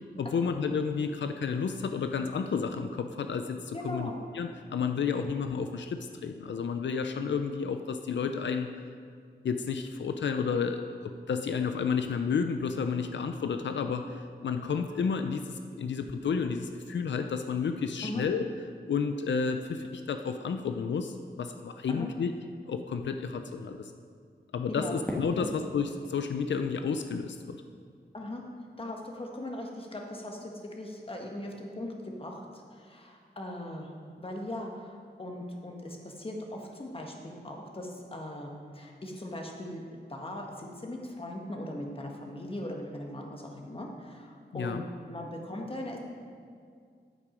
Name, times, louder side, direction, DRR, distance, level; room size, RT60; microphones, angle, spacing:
voice 1, 0.2-8.7 9.4-18.4 18.9-22.3 22.7-23.8 24.5-27.6 44.5-44.8, left 5 dB, 90° left, 7 dB, 0.5 m, -31 dB
voice 2, 3.7-4.2 18.0-18.3 21.9-22.1 24.7-25.0 25.3-25.5 28.1-28.4 28.8-33.9 34.2-46.0, left 1 dB, 30° left, 1 dB, 1.5 m, -39 dB
Fireworks, 25.1-28.1, left 1 dB, 10° left, 1.6 m, -40 dB
10.5 x 8.4 x 5.2 m, 2.2 s
wide cardioid pair, 130°, 18 cm